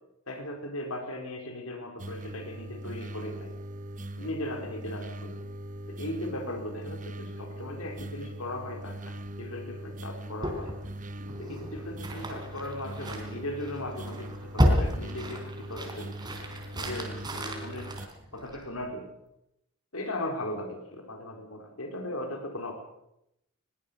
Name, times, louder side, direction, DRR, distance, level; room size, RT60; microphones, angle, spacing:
voice 1, 0.3-3.5 4.1-5.3 5.9-10.7 11.3-16.2 16.7-17.9 18.3-19.1 19.9-22.7, left 1 dB, 85° left, 4 dB, 4.5 m, -38 dB
sound 1, 2.0-18.1, right 1 dB, 35° right, 1.1 m, -41 dB
sound 2, 10.4-18.9, equal, 20° right, 4.0 m, -32 dB
21.5 x 20.5 x 6.9 m, 0.80 s
head